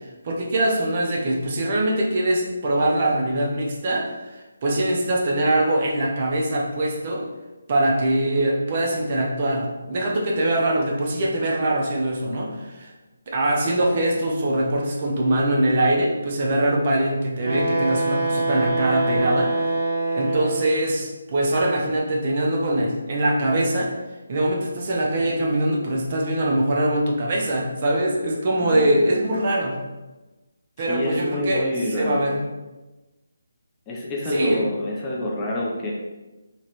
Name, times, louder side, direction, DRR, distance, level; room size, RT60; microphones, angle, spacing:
voice 1, 0.2-7.3 7.7-12.9 13.3-19.6 20.1-23.9 24.3-29.8 30.8-31.7 32.0-32.5 34.3-34.6, right 1 dB, 35° right, -1 dB, 0.6 m, -23 dB
Wind instrument woodwind instrument, 17.4-20.9, right 2 dB, 70° right, 0.8 m, -24 dB
voice 2, 30.8-32.3 33.9-35.9, left 1 dB, 15° left, -3 dB, 0.5 m, -27 dB
3.0 x 2.9 x 2.9 m, 1.1 s
hypercardioid pair, 165°, 0 cm